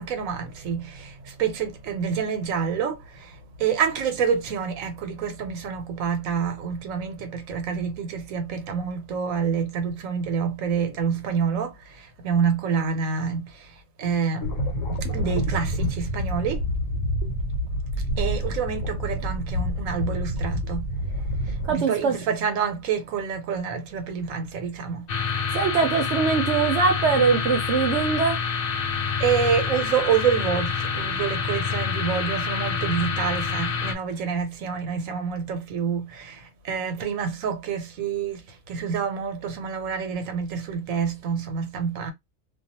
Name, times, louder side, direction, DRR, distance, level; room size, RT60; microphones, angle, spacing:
voice 1, 0.0-14.5 15.1-16.7 18.2-20.9 21.4-25.1 29.2-42.1, right 6 dB, 85° right, 1.1 m, -27 dB
sound 1, 14.4-21.7, equal, 90° left, 1.1 m, -28 dB
voice 2, 21.7-22.2 25.5-28.4, right 5 dB, 65° right, 0.8 m, -22 dB
sound 2, 25.1-33.9, left 5 dB, 55° left, 0.7 m, -27 dB
2.4 x 2.3 x 2.7 m
omnidirectional pair, 1.3 m